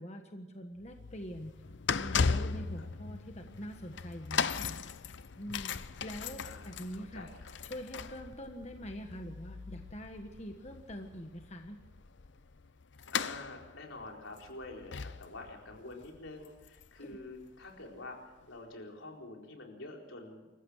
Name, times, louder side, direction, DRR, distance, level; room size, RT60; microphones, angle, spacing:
voice 1, 0.0-1.5 1.9-4.8 5.4-5.7 6.0-7.3 7.6-11.8 17.0-17.2, equal, 35° left, 4 dB, 1.4 m, -44 dB
sound 1, 0.8-17.8 18.4-18.5, left 5 dB, 65° left, 0.7 m, -38 dB
voice 2, 2.3-2.9 6.4-7.5 13.1-20.5, left 2 dB, 85° left, 0 dB, 4.4 m, -47 dB
27.5 x 15.0 x 6.4 m, 1.1 s
head